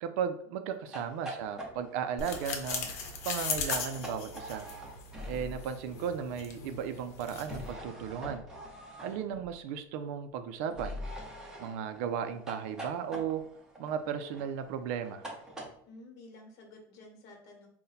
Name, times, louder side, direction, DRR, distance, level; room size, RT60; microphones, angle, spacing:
voice 1, 0.0-2.9 3.3-4.7 5.3-8.4 9.0-11.0 11.6-13.4 13.8-15.2, right 8 dB, 75° right, 8 dB, 0.4 m, -35 dB
sound 1, 0.8-5.8 7.4-9.7 10.7-15.7, equal, 10° right, 0.7 m, -44 dB
sound 2, 2.2-7.7, left 5 dB, 85° left, 0.7 m, -38 dB
voice 2, 15.8-17.7, left 2 dB, 50° left, 2 dB, 1.1 m, -52 dB
3.9 x 2.2 x 4.0 m, 0.66 s
cardioid pair, 160°, 8 cm